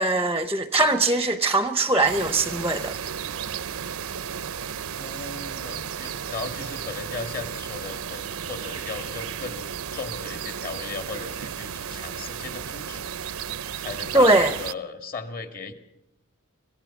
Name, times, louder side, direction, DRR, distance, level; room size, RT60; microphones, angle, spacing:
voice 1, 0.0-2.9 14.1-14.5, right 2 dB, 10° right, 0.7 m, -21 dB
sound 1, 2.0-14.7, right 8 dB, 70° right, 0.7 m, -34 dB
voice 2, 4.9-13.4 13.8-15.7, left 4 dB, 40° left, 1.9 m, -37 dB
25.5 x 16.0 x 7.2 m
head